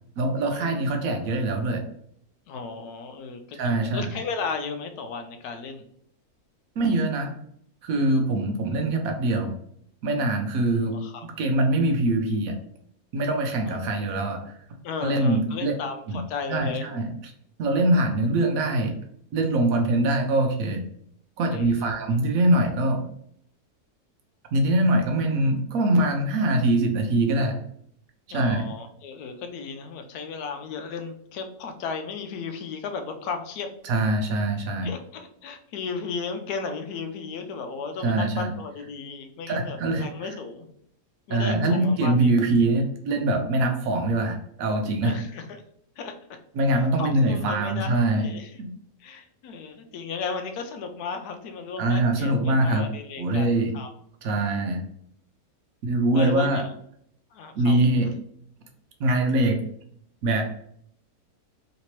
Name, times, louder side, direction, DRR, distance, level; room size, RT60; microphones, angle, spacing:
voice 1, 0.2-1.8 3.6-4.1 6.8-7.3 7.8-9.5 10.0-11.0 11.2-12.5 13.1-14.4 15.0-15.7 16.1-16.2 16.5-17.1 17.6-18.9 19.3-20.8 21.4-23.0 24.5-27.6 28.3-28.6 33.8-34.9 38.0-38.5 39.5-40.3 41.3-45.2 46.6-48.3 48.6-48.7 51.8-52.9 53.2-53.7 54.2-54.8 55.8-56.6 57.6-58.1 59.0-59.6 60.2-60.4, right 2 dB, 70° right, 4 dB, 1.0 m, -23 dB
voice 2, 2.5-5.8 10.9-11.3 13.6-13.8 14.8-16.9 21.5-21.9 28.3-33.7 34.8-40.7 41.3-42.1 45.0-45.6 46.0-46.1 46.7-48.6 49.0-53.9 56.1-56.7 57.3-57.7, left 5 dB, 85° left, 6 dB, 1.1 m, -35 dB
3.3 x 2.9 x 2.9 m, 0.67 s
omnidirectional pair, 1.6 m